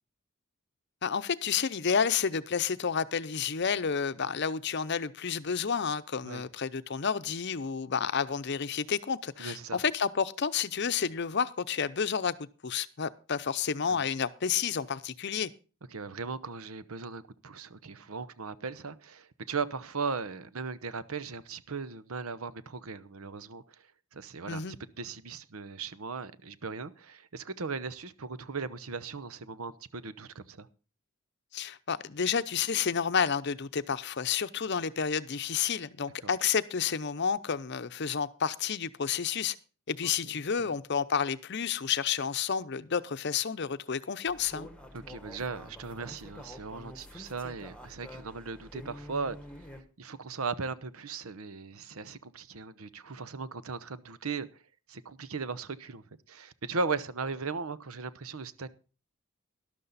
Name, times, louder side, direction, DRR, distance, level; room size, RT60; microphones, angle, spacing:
voice 1, 1.0-12.3 12.6-15.5 24.5-24.7 31.5-39.6 39.9-44.7, left 6 dB, 55° left, 0.6 m, -30 dB
voice 2, 9.4-9.8 13.9-14.1 15.9-30.7 36.2-36.3 40.0-40.3 40.6-40.7 44.9-49.4 50.0-54.6 54.9-58.7, right 4 dB, 85° right, 0.9 m, -38 dB
sound 1, 44.3-49.8, left 1 dB, 5° left, 1.3 m, -47 dB
12.5 x 12.0 x 4.1 m
head